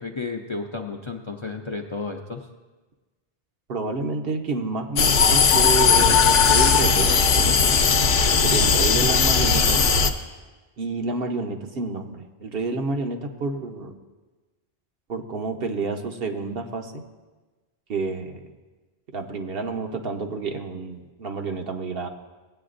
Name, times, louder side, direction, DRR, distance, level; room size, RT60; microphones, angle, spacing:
voice 1, 0.0-2.4, left 4 dB, 40° left, 3 dB, 0.5 m, -32 dB
voice 2, 3.7-7.6 8.3-9.8 10.8-13.9 15.1-17.0 17.9-18.5 19.1-22.1, right 3 dB, 65° right, 4 dB, 1.0 m, -29 dB
sound 1, 5.0-10.1, left 5 dB, 75° left, 0.9 m, -18 dB
17.5 x 8.5 x 2.5 m, 1.2 s
omnidirectional pair, 1.1 m